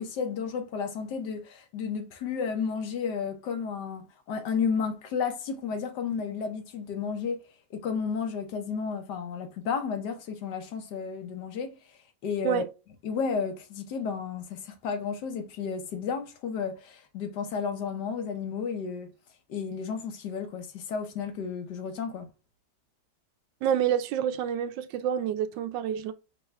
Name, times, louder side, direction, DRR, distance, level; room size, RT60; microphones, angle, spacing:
voice 1, 0.0-7.4 7.7-12.6 13.0-19.1 19.5-22.3, left 6 dB, 70° left, 1.5 m, -32 dB
voice 2, 23.6-26.1, right 9 dB, 80° right, 1.3 m, -28 dB
5.4 x 2.3 x 3.1 m
omnidirectional pair, 1.9 m